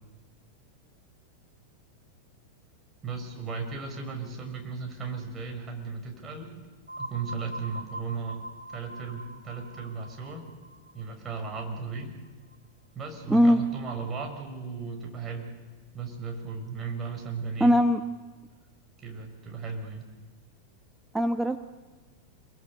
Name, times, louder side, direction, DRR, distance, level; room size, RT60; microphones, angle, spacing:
voice 1, 3.0-6.5 7.0-8.4 8.7-10.4 10.9-12.2 12.9-15.5 15.9-17.7 19.0-20.1, right 5 dB, 25° right, 3 dB, 6.5 m, -36 dB
sound 1, 6.9-12.6, right 1 dB, 85° right, 1.3 m, -43 dB
voice 2, 13.3-13.6 17.6-18.0 21.1-21.6, equal, 5° right, 7 dB, 1.1 m, -20 dB
28.0 x 23.0 x 8.3 m, 1.3 s
figure-of-eight pair, 90°, 0 cm